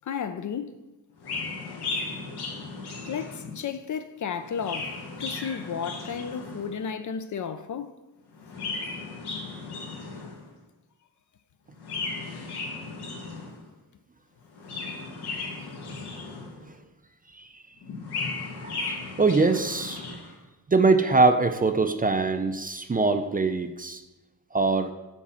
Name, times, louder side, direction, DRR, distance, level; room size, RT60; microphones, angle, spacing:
voice 1, 0.1-0.8 3.0-7.9, left 7 dB, 50° left, 0.5 m, -33 dB
Chirp tweet, 1.2-3.7 4.4-6.8 8.3-10.5 11.8-13.7 14.5-16.7 17.8-20.3, left 3 dB, 85° left, 1.3 m, -36 dB
voice 2, 18.6-18.9 19.2-20.0 20.7-24.0 24.5-24.9, right 3 dB, 25° right, 0.4 m, -23 dB
7.3 x 4.1 x 5.6 m
cardioid pair, 100°, 38 cm